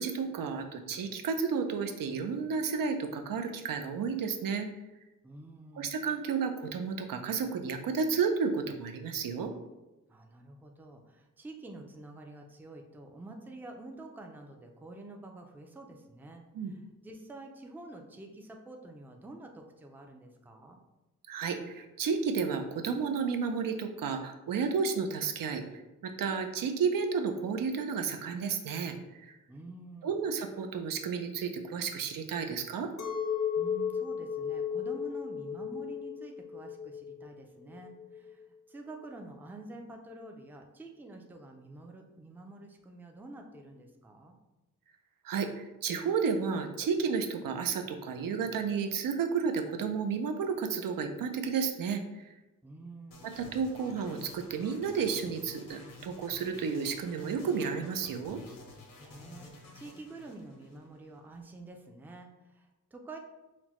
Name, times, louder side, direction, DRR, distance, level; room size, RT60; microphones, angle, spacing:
voice 1, 0.0-4.7 5.8-9.5 16.5-16.7 21.3-25.6 26.0-29.4 30.0-32.9 45.2-52.2 53.2-58.4, right 5 dB, 90° right, 6 dB, 0.5 m, -32 dB
voice 2, 5.2-6.0 10.1-16.4 16.7-20.8 29.5-30.1 33.6-44.3 52.6-53.3 59.0-63.2, right 2 dB, 5° right, 3 dB, 0.3 m, -48 dB
Chink clink, 33.0-38.5, left 7 dB, 60° left, 0.5 m, -35 dB
sound 1, 53.1-61.2, left 2 dB, 85° left, 0.9 m, -51 dB
5.8 x 2.1 x 3.0 m, 1.0 s
wide cardioid pair, 145°, 32 cm